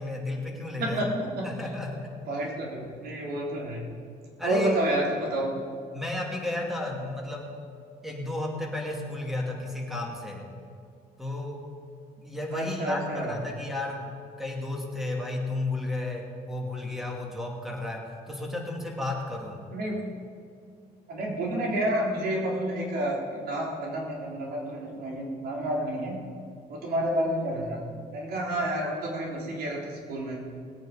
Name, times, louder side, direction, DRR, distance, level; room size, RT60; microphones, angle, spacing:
voice 1, 0.0-1.0 1.4-2.2 4.4-4.8 5.9-7.5 8.0-10.5 11.2-11.6 12.2-14.1 14.4-19.6, left 1 dB, ahead, 0 dB, 2.6 m, -33 dB
voice 2, 0.8-1.5 2.3-3.8 4.4-5.5 12.5-13.4 19.7-20.0 21.1-26.2 26.7-27.8 28.1-30.4, right 1 dB, 65° right, -2 dB, 3.6 m, -30 dB
20.0 x 8.9 x 5.2 m, 2.3 s
cardioid pair, 110°, 17 cm